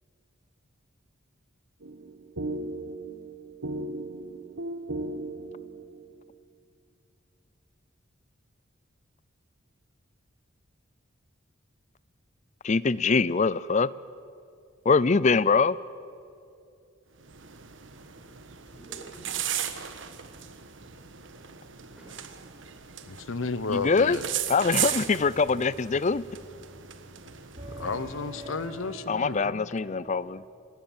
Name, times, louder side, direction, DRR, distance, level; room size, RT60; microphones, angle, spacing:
sound 1, 1.8-6.1, right 2 dB, 90° right, 1.3 m, -36 dB
voice 1, 12.6-13.9 14.9-15.8 23.7-24.2 24.5-26.2 29.1-30.4, left 4 dB, 35° left, 19 dB, 0.5 m, -23 dB
sound 2, 17.2-29.0, right 10 dB, 65° right, 1.3 m, -37 dB
voice 2, 17.8-22.4 22.7-22.9, right 1 dB, 5° right, -5 dB, 7.7 m, -54 dB
voice 3, 23.1-24.3 27.7-29.7, left 4 dB, 75° left, 15 dB, 0.9 m, -33 dB
sound 3, 24.7-30.1, right 1 dB, 40° right, 4.0 m, -45 dB
26.0 x 19.0 x 7.3 m, 2.5 s
head